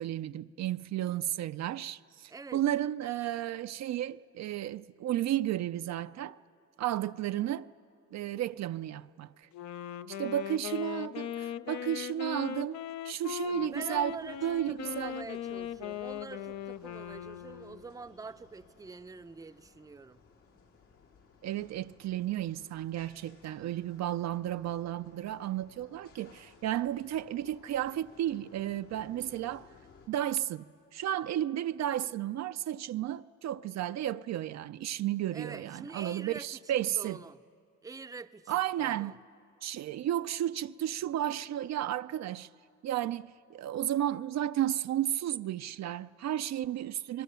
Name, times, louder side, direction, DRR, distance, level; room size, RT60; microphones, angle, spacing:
voice 1, 0.0-6.4 6.8-7.7 8.1-9.3 10.1-12.8 13.0-15.2 21.4-29.7 30.1-30.6 30.9-37.2 38.5-39.2 39.6-42.5 42.8-47.2, right 12 dB, 60° right, 0.5 m, -33 dB
voice 2, 2.3-2.6 13.4-20.2 35.3-37.4 37.8-39.2, right 4 dB, 10° right, 0.6 m, -45 dB
Wind instrument woodwind instrument, 9.5-17.9, left 10 dB, 65° left, 0.7 m, -39 dB
sound 1, 13.7-30.1, left 5 dB, 90° left, 4.4 m, -60 dB
28.5 x 22.0 x 6.9 m
cardioid pair, 90°, 30 cm